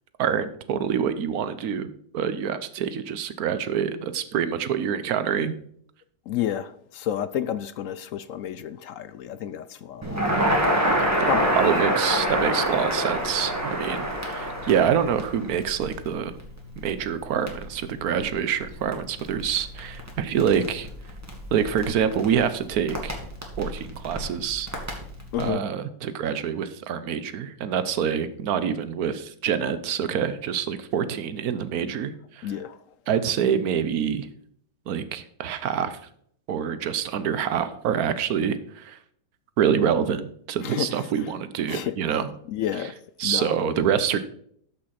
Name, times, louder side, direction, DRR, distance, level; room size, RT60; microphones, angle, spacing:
voice 1, 0.2-1.9 2.1-5.6 11.0-11.1 11.5-16.3 16.8-20.9 21.5-23.2 23.6-24.7 25.4-32.5 33.1-34.3 34.9-36.0 36.5-39.0 39.6-42.3 43.2-44.2, right 8 dB, 80° right, 1.3 m, -26 dB
voice 2, 6.3-10.5 10.8-11.7 17.4-17.5 25.3-25.6 31.0-31.1 32.4-32.8 40.6-41.3 41.7-44.0, left 10 dB, 70° left, 0.9 m, -31 dB
Crackle, 10.0-25.5, equal, 10° right, 1.9 m, -28 dB
13.0 x 5.7 x 4.2 m
omnidirectional pair, 1.6 m